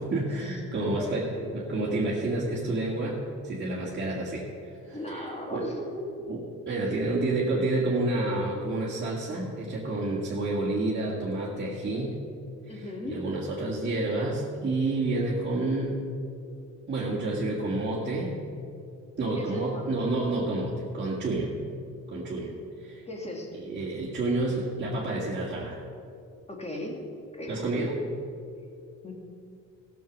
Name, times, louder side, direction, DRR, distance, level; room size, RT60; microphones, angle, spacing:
voice 1, 0.0-1.3 1.5-3.2 3.4-4.4 4.9-5.7 6.3-6.4 6.7-12.2 12.7-16.0 16.9-18.3 19.2-21.5 22.1-22.5 22.8-23.0 23.6-25.8 27.5-28.0, right 2 dB, 35° right, -7 dB, 2.1 m, -29 dB
voice 2, 1.0-1.5 4.0-4.3 4.9-6.1 12.7-13.2 19.3-19.9 23.1-23.5 26.5-27.0 27.3-27.8 29.0-29.1, left 1 dB, 20° left, 0 dB, 2.4 m, -37 dB
14.5 x 6.8 x 6.2 m, 2.6 s
cardioid pair, 90°, 30 cm